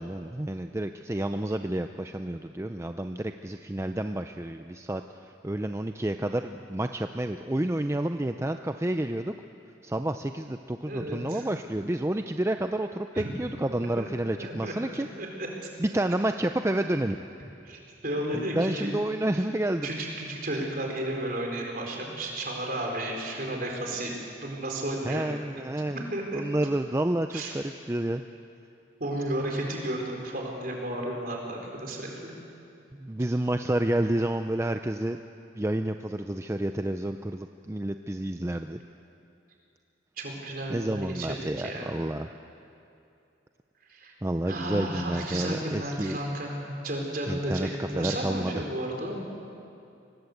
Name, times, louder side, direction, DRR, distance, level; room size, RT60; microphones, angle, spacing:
voice 1, 0.0-9.3 9.8-15.1 15.8-17.2 18.3-19.9 25.0-26.1 26.3-28.2 32.9-35.2 35.6-38.8 40.7-42.3 44.2-46.2 47.3-48.6, right 1 dB, 15° right, 7 dB, 0.5 m, -30 dB
voice 2, 10.9-11.4 13.1-13.3 14.0-14.1 14.4-14.7 15.2-15.5 17.6-18.9 19.8-24.1 24.4-25.3 25.9-26.7 27.3-27.5 29.0-32.3 40.2-41.9 43.9-44.1 44.4-49.2, right 1 dB, 50° right, 1 dB, 4.2 m, -33 dB
24.5 x 19.0 x 8.0 m, 2.6 s
head